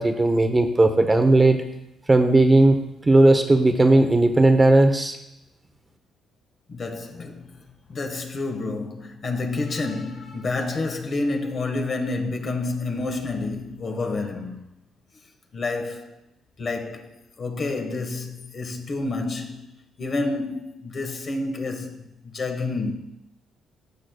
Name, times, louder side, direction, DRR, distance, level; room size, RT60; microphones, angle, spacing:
voice 1, 0.0-1.6 2.1-2.8 3.1-5.2, right 2 dB, 20° right, 0.8 m, -16 dB
voice 2, 6.7-7.6 7.9-14.6 15.5-16.2 16.6-22.9, left 3 dB, 45° left, 1.4 m, -29 dB
15.0 x 6.4 x 2.3 m
cardioid pair, 90°, 0 cm